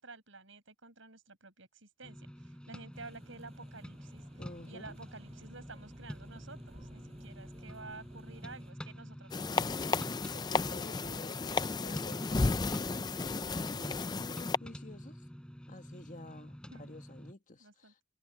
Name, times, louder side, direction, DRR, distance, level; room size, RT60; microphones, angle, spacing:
voice 1, 0.0-4.2 4.7-10.1 16.6-16.9 17.6-17.9, right 3 dB, 70° right, 6.1 m, -51 dB
sound 1, 2.0-17.3, equal, 5° left, 7.5 m, -48 dB
sound 2, 2.9-8.7, equal, 30° right, 5.8 m, -56 dB
voice 2, 4.4-5.0 10.3-15.3 15.7-18.0, left 2 dB, 40° left, 1.6 m, -50 dB
sound 3, 9.3-14.6, left 3 dB, 20° left, 0.3 m, -33 dB
head